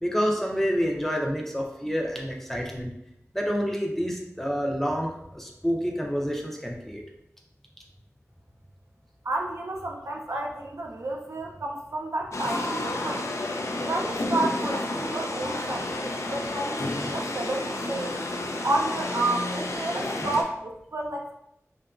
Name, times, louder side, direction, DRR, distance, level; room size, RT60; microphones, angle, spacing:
voice 1, 0.0-2.9 3.3-7.0, equal, 5° left, 0 dB, 0.4 m, -28 dB
voice 2, 9.2-13.3 13.8-18.2 18.6-21.3, right 2 dB, 65° right, 1 dB, 0.4 m, -31 dB
sound 1, 12.3-20.4, left 2 dB, 65° left, 0.3 m, -31 dB
2.8 x 2.4 x 2.3 m, 0.78 s
wide cardioid pair, 65°, 5 cm